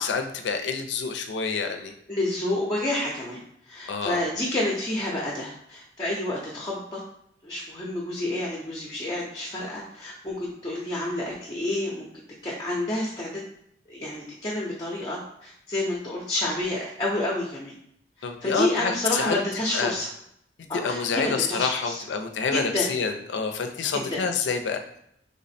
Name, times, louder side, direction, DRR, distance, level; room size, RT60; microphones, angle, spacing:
voice 1, 0.0-1.9 3.9-4.3 18.2-19.4 19.7-19.9 20.7-24.8, left 5 dB, 85° left, 5 dB, 0.4 m, -27 dB
voice 2, 2.1-3.4 3.7-7.0 7.4-12.1 12.4-13.4 13.9-17.7 18.2-20.1 20.7-22.0 22.5-22.9 23.9-24.2, left 1 dB, 20° left, -4 dB, 0.5 m, -29 dB
3.3 x 2.0 x 4.1 m, 0.72 s
head